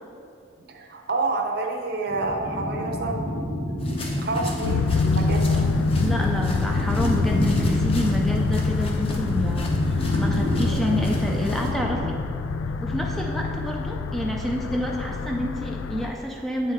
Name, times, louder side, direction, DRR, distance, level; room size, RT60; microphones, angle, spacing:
voice 1, 0.6-3.4 4.2-5.6, right 3 dB, 50° right, 3 dB, 0.7 m, -28 dB
sound 1, 2.1-12.1, equal, 65° left, 1.1 m, -29 dB
sound 2, 3.8-11.7, left 2 dB, 30° left, 0.7 m, -40 dB
sound 3, 4.6-16.1, left 4 dB, 85° left, 0.3 m, -26 dB
voice 2, 6.0-12.2 12.8-16.7, equal, ahead, 0 dB, 0.3 m, -28 dB
8.3 x 5.7 x 3.2 m, 2.5 s
head